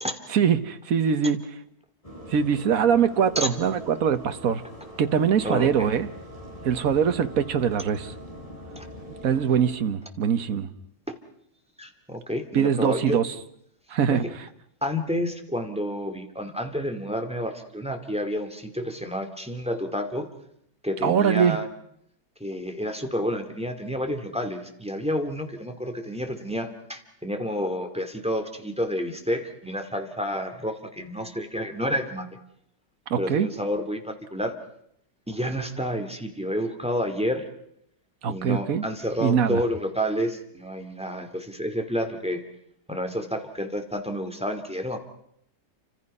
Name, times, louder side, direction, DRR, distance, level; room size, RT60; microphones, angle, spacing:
voice 1, 0.3-1.4 2.3-4.6 5.0-6.1 6.6-8.1 9.2-10.7 12.5-13.3 13.9-14.2 21.0-21.6 33.1-33.5 38.2-38.9 39.2-39.6, right 7 dB, 55° right, 10 dB, 1.6 m, -22 dB
sound 1, 2.0-9.7, equal, 20° left, 7.2 m, -42 dB
voice 2, 5.4-5.9 8.8-8.9 11.8-13.2 14.1-14.2 14.8-20.3 20.8-21.7 22.4-32.3 33.2-34.5 35.3-37.4 38.3-42.4 42.9-45.0, equal, 5° right, 6 dB, 2.2 m, -29 dB
29.0 x 26.0 x 5.5 m, 0.76 s
omnidirectional pair, 1.9 m